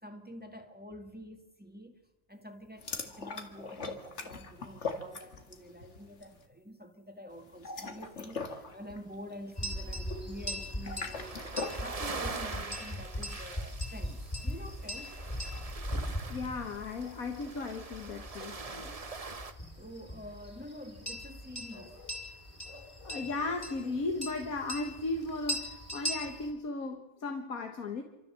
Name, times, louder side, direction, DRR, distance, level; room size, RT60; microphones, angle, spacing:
voice 1, 0.0-2.0 2.3-15.2 19.8-22.0, equal, 5° right, 5 dB, 1.8 m, -47 dB
sound 1, 2.8-5.7 6.0-6.3 7.5-11.8, left 4 dB, 55° left, 2.1 m, -40 dB
sound 2, 9.6-26.5, equal, 15° left, 4.4 m, -40 dB
sound 3, 11.1-19.5, right 4 dB, 30° right, 1.0 m, -43 dB
voice 2, 16.3-19.0 23.1-28.0, left 3 dB, 75° left, 5 dB, 1.9 m, -36 dB
28.0 x 13.5 x 7.6 m, 1.1 s
omnidirectional pair, 1.5 m